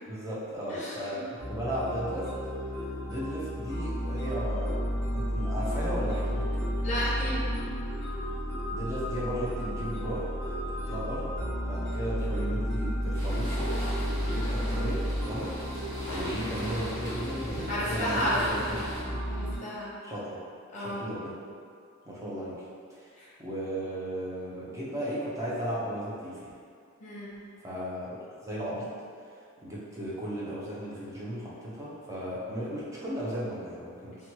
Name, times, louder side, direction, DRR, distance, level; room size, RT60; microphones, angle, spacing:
voice 1, 0.1-2.3 3.1-6.5 8.7-10.3 10.7-11.3 11.6-13.8 14.1-15.8 16.0-19.1 20.0-20.4 20.8-21.4 22.1-22.6 22.9-23.1 23.4-26.5 27.6-28.9 29.6-34.2, equal, 15° right, -7 dB, 0.5 m, -35 dB
voice 2, 0.7-1.2 6.8-7.4 14.3-14.5 17.7-18.8 19.3-19.9 20.7-21.1 23.2-23.3 27.0-27.3, equal, 35° left, -7 dB, 0.7 m, -32 dB
sound 1, 1.4-19.6, equal, ahead, 1.3 m, -32 dB
sound 2, 13.1-19.0, equal, 40° right, 1.4 m, -39 dB
sound 3, 16.1-18.0, left 3 dB, 75° left, 0.4 m, -46 dB
2.9 x 2.2 x 2.8 m, 2.3 s
head